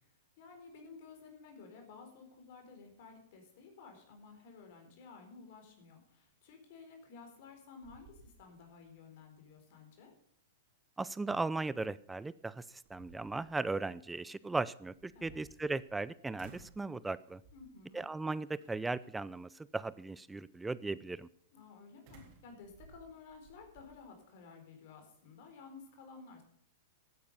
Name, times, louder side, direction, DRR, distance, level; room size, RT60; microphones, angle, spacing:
voice 1, 0.0-10.1 15.1-15.4 17.5-18.0 21.5-26.4, left 4 dB, 55° left, 4 dB, 4.2 m, -54 dB
sound 1, 7.2-7.5 7.8-8.8 9.2-9.3 12.0-12.1 12.6-13.6 14.9-16.0 16.4-16.9 17.4-17.8 18.6-19.1 22.1-23.9, right 3 dB, 45° right, 4.0 m, -58 dB
voice 2, 11.0-17.4 17.9-21.3, right 3 dB, 10° right, 18 dB, 0.4 m, -37 dB
16.0 x 9.5 x 5.4 m, 0.66 s
hypercardioid pair, 105°, 0 cm